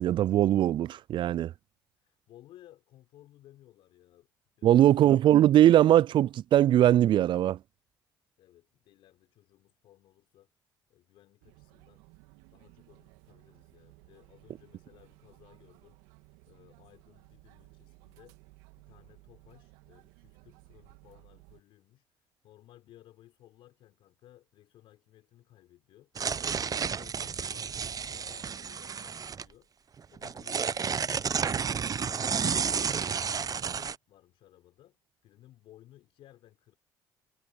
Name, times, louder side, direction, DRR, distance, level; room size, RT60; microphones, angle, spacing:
voice 1, 0.0-1.5 4.6-7.6, right 12 dB, 55° right, 0.4 m, -21 dB
voice 2, 2.0-4.3 4.6-5.0 8.4-10.5 10.9-12.0 12.5-16.2 16.5-18.4 18.8-26.1 26.6-29.7 30.1-31.7 32.0-36.7, left 14 dB, 70° left, 4.9 m, -58 dB
sound 1, 11.4-21.6, right 24 dB, 80° right, 3.2 m, -58 dB
sound 2, 26.1-29.4 30.0-33.9, right 6 dB, 40° right, 0.8 m, -31 dB
hypercardioid pair, 50°, 10 cm